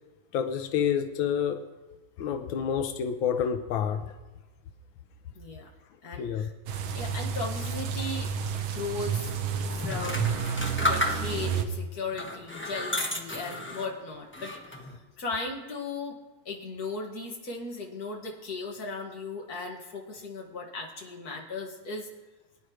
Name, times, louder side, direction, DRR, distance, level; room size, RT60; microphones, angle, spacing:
voice 1, 0.3-1.7 2.2-4.1 6.2-6.5, left 8 dB, 90° left, 1.5 m, -28 dB
voice 2, 5.3-5.7 6.0-6.5 6.9-9.4 9.7-10.4 10.8-16.2 16.5-22.1, left 3 dB, 50° left, 2.3 m, -37 dB
sound 1, 6.7-11.6, right 6 dB, 80° right, 1.7 m, -31 dB
sound 2, 9.8-11.6 12.1-13.9 14.3-14.9, left 1 dB, 10° left, 1.0 m, -32 dB
23.0 x 10.0 x 3.1 m
omnidirectional pair, 2.1 m